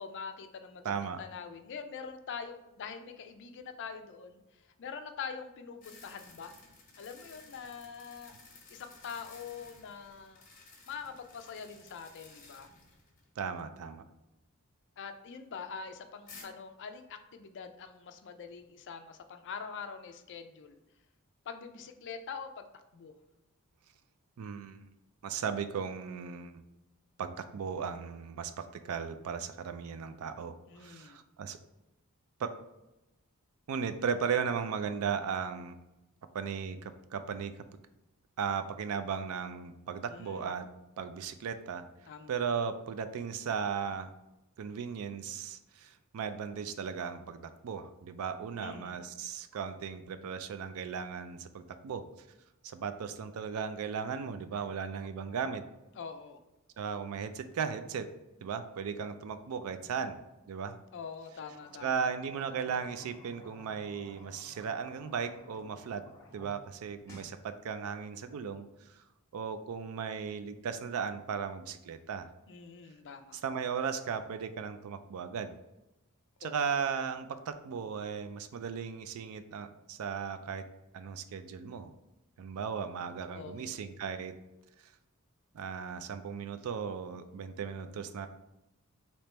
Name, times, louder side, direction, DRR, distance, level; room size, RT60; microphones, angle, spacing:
voice 1, 0.0-0.9 1.2-6.5 7.0-8.4 8.7-10.4 10.9-12.7 15.0-20.8 21.5-22.7 22.9-23.1 30.7-31.2 40.1-40.5 42.1-42.3 48.6-49.0 56.0-56.4 60.9-61.9 72.5-73.4 76.4-76.6 83.3-83.7, left 6 dB, 55° left, 8 dB, 0.4 m, -44 dB
voice 2, 0.8-1.2 13.4-14.0 24.4-24.9 25.2-26.6 27.2-31.6 32.4-32.5 33.7-35.8 36.3-37.5 38.4-40.7 41.0-41.8 42.3-44.1 44.6-52.1 52.6-55.6 56.8-58.1 58.4-60.2 60.5-60.8 61.8-66.0 66.3-68.7 69.0-69.1 69.3-72.3 73.3-75.5 76.4-80.6 80.9-81.9 82.4-84.3 84.8-84.9 85.5-88.3, right 6 dB, 70° right, 10 dB, 0.4 m, -36 dB
sound 1, 5.8-13.3 13.6-13.7 16.3-16.4, left 4 dB, 40° left, 1.1 m, -55 dB
sound 2, 61.4-66.5 66.8-67.4, equal, 15° left, 1.0 m, -54 dB
3.3 x 2.9 x 4.2 m, 0.96 s
head